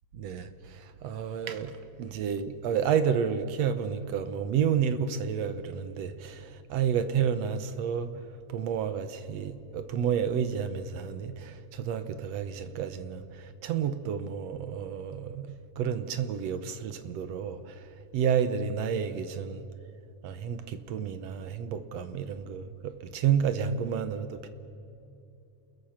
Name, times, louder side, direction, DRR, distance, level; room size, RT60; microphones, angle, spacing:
voice 1, 0.1-1.7 2.0-8.1 8.5-17.8 18.1-19.7 20.2-24.5, right 7 dB, 65° right, 1.8 m, -30 dB
29.5 x 21.5 x 5.8 m
omnidirectional pair, 3.7 m